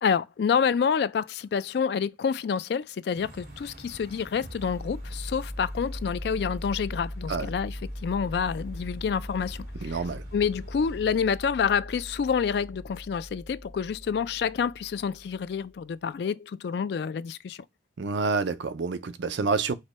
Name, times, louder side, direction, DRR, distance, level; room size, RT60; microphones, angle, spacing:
voice 1, 0.0-10.0 10.3-17.6, left 6 dB, 60° left, 0.3 m, -28 dB
sound 1, 3.1-11.2, right 1 dB, 55° right, 2.7 m, -49 dB
sound 2, 4.4-15.7, equal, 10° left, 0.8 m, -40 dB
voice 2, 9.8-10.2 18.0-19.7, right 4 dB, 75° right, 0.5 m, -28 dB
5.0 x 2.2 x 4.1 m
head